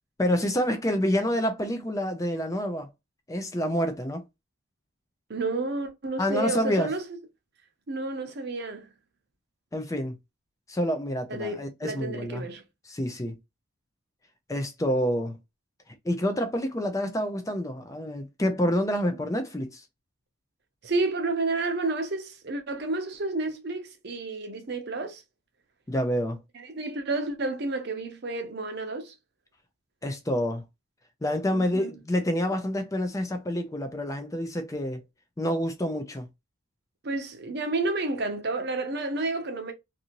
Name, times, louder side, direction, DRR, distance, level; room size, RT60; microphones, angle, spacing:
voice 1, 0.2-2.9 3.3-4.2 6.2-6.9 9.7-10.2 10.7-12.5 12.8-13.3 14.5-15.4 16.0-19.8 25.9-26.4 30.0-30.6 31.2-35.0 35.4-36.3, equal, 15° left, 0.4 m, -28 dB
voice 2, 5.3-7.0 7.9-8.9 11.3-12.6 20.8-25.2 26.5-29.1 31.5-31.9 37.0-39.7, right 2 dB, 50° right, 0.7 m, -30 dB
2.6 x 2.5 x 2.9 m
head